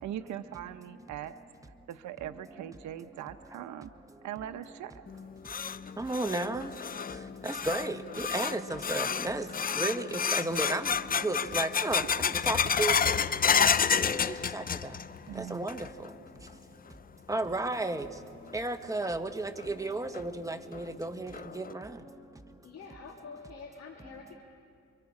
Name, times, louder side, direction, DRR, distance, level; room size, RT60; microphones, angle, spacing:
voice 1, 0.0-1.3 1.9-3.9 4.2-5.0 15.3-15.7, right 11 dB, 70° right, 8 dB, 0.8 m, -40 dB
sound 1, 5.1-15.2 15.5-16.1 16.5-16.6 17.3-17.4 19.0-19.1 19.6-19.7 20.1-20.2 20.7-20.8 21.3-21.7, left 7 dB, 30° left, 0.5 m, -30 dB
voice 2, 6.0-6.7 7.4-9.5 9.8-10.9 11.2-12.9 14.0-14.6 15.3-15.8 17.3-18.1 18.5-21.9, right 2 dB, 10° right, 7 dB, 1.3 m, -33 dB
voice 3, 22.6-24.4, left 4 dB, 55° left, 0 dB, 2.2 m, -47 dB
29.0 x 23.5 x 4.9 m, 2.4 s
cardioid pair, 90°, 30 cm